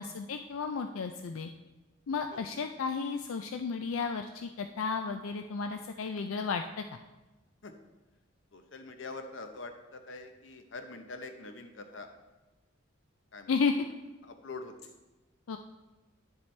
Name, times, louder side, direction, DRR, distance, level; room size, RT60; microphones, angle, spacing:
voice 1, 0.0-1.5 2.1-6.6 13.5-13.7 15.5-15.6, left 5 dB, 85° left, 6 dB, 0.4 m, -33 dB
voice 2, 8.5-12.1 13.3-13.6 14.2-14.9, left 3 dB, 65° left, 7 dB, 0.8 m, -44 dB
10.5 x 7.2 x 3.2 m, 1.1 s
head